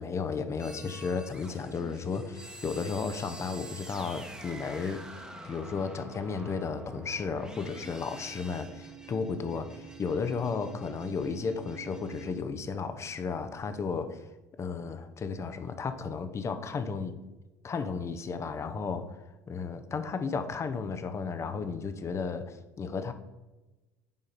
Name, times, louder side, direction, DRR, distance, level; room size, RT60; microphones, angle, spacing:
voice 1, 0.0-5.0 5.4-14.2 14.6-17.2 17.6-19.2 19.5-23.1, left 5 dB, 30° left, 9 dB, 0.8 m, -34 dB
sound 1, 0.6-12.4, right 2 dB, 10° right, 1.1 m, -46 dB
7.1 x 5.1 x 4.2 m, 1.1 s
figure-of-eight pair, 65°, 9 cm